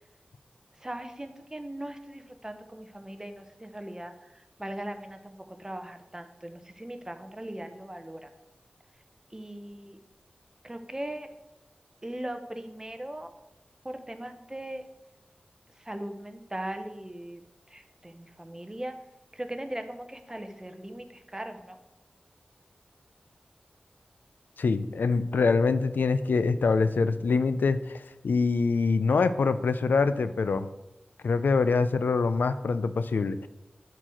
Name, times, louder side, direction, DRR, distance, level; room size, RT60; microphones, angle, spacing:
voice 1, 0.8-8.3 9.3-10.0 10.6-11.3 12.0-13.3 13.8-14.8 15.8-17.4 17.7-18.9 19.3-21.8, right 1 dB, 20° right, 6 dB, 1.0 m, -39 dB
voice 2, 24.6-30.7 31.2-33.5, left 4 dB, 85° left, 12 dB, 0.4 m, -25 dB
9.9 x 4.7 x 6.3 m, 0.95 s
wide cardioid pair, 65°, 3 cm